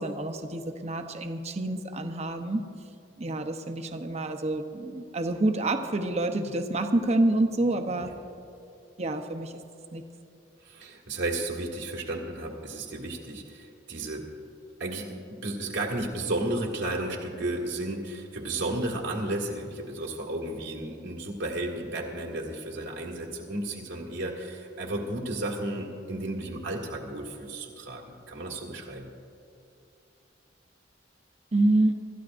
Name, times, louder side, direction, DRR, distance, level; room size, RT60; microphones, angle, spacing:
voice 1, 0.0-2.6 3.2-8.1 9.0-9.5 9.9-10.0 31.5-32.0, right 2 dB, 35° right, 6 dB, 0.8 m, -27 dB
voice 2, 10.6-14.3 14.8-29.1, right 2 dB, 85° right, -2 dB, 1.9 m, -33 dB
26.0 x 13.5 x 2.6 m, 2.6 s
head